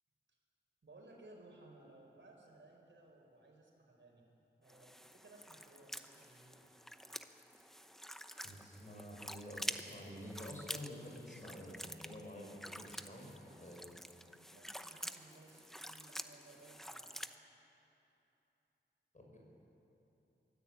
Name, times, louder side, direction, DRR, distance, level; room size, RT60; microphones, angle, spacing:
voice 1, 0.8-4.2 4.6-6.9 14.3-17.1, right 2 dB, 75° right, 0 dB, 4.5 m, -60 dB
sound 1, 4.7-17.4, equal, ahead, 0.9 m, -48 dB
voice 2, 8.4-13.9 19.1-19.4, equal, 40° left, -1 dB, 5.6 m, -49 dB
23.5 x 14.5 x 8.4 m, 3.0 s
wide cardioid pair, 75°, 19 cm